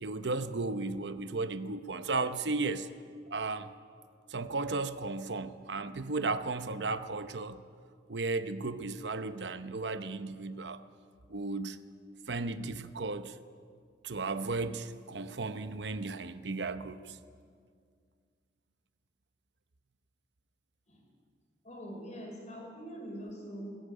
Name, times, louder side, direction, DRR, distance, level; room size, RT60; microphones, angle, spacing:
voice 1, 0.0-2.9 3.3-3.7 4.3-7.6 8.1-10.8 11.3-11.8 12.3-13.4 14.0-17.2, right 3 dB, 70° right, 0.9 m, -35 dB
voice 2, 21.6-23.8, equal, 40° left, 6.0 m, -43 dB
20.5 x 14.5 x 8.9 m
head